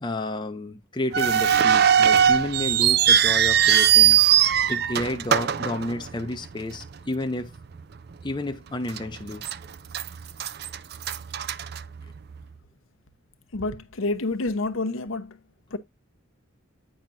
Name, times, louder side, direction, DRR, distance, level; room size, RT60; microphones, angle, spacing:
voice 1, 0.0-4.2 4.7-7.5 8.2-9.4, left 2 dB, 20° left, 0.6 m, -31 dB
sound 1, 1.1-6.5 6.7-6.8 7.6-7.8 8.3-8.4 9.0-9.6 9.9-12.4, right 9 dB, 50° right, 0.4 m, -20 dB
voice 2, 13.5-15.4 15.7-15.8, left 2 dB, 75° left, 0.9 m, -28 dB
8.9 x 5.8 x 2.6 m
head